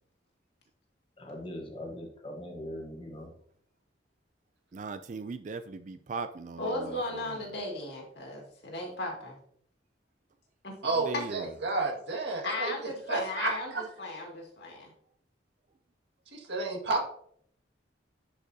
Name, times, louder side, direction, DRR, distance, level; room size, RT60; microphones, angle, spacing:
voice 1, 1.2-3.3, left 1 dB, 30° left, 3 dB, 1.2 m, -41 dB
voice 2, 4.7-7.2 11.0-11.5, right 4 dB, 40° right, 11 dB, 0.3 m, -39 dB
voice 3, 6.6-9.4 10.6-10.7 12.4-14.9, left 2 dB, 60° left, 0 dB, 2.2 m, -36 dB
voice 4, 10.8-12.7 13.1-13.8 16.3-17.1, right 3 dB, 65° right, 0 dB, 1.8 m, -31 dB
10.0 x 5.1 x 2.7 m, 0.65 s
head